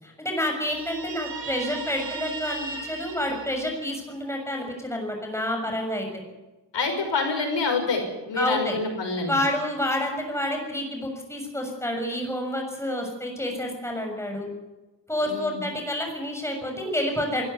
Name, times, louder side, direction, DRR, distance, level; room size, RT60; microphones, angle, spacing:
voice 1, 0.0-6.2 8.4-8.8 9.3-14.5 15.1-17.4, left 1 dB, 5° left, 2 dB, 6.9 m, -29 dB
Guitar, 0.7-4.2, right 4 dB, 75° right, 4.8 m, -37 dB
voice 2, 6.7-9.4 15.2-15.6, left 4 dB, 75° left, 3 dB, 5.8 m, -27 dB
23.5 x 14.5 x 8.1 m, 1.1 s
wide cardioid pair, 115°, 43 cm